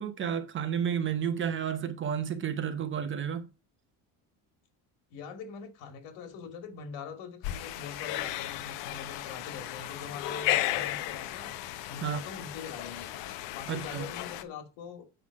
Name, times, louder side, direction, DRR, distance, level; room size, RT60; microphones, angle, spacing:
voice 1, 0.0-3.5 12.0-12.2 13.7-14.1, right 8 dB, 25° right, 0.9 m, -31 dB
voice 2, 5.1-11.5 11.9-13.1 13.5-15.1, left 6 dB, 90° left, 2.4 m, -43 dB
sound 1, 7.4-14.4, left 14 dB, 70° left, 0.9 m, -34 dB
8.1 x 5.5 x 4.8 m
cardioid pair, 170°, 44 cm